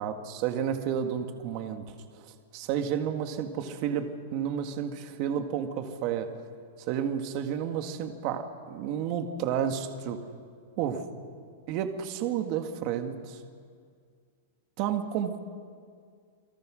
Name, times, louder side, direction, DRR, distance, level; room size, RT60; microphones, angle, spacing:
voice 1, 0.0-1.9 2.5-6.3 6.9-10.2 10.8-11.0 11.7-13.4 14.8-15.4, right 8 dB, 35° right, 6 dB, 1.8 m, -31 dB
28.5 x 22.5 x 6.4 m, 2.1 s
supercardioid pair, 170°, 0 cm